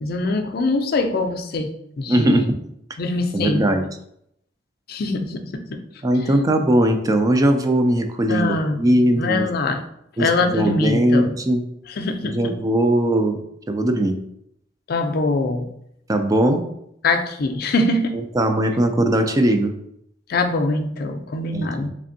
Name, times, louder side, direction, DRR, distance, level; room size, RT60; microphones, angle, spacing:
voice 1, 0.0-2.5 3.0-3.7 4.9-5.8 6.2-6.3 8.3-8.8 9.2-9.8 10.2-11.3 11.9-12.6 14.9-15.7 17.0-18.2 20.3-21.9, left 2 dB, 55° left, 5 dB, 0.4 m, -23 dB
voice 2, 2.1-2.6 3.3-3.8 6.0-9.5 10.2-11.6 12.2-13.4 13.7-14.2 16.1-16.6 18.3-19.7 21.5-21.9, right 1 dB, 20° right, 6 dB, 0.3 m, -19 dB
3.5 x 3.3 x 2.6 m, 0.75 s
head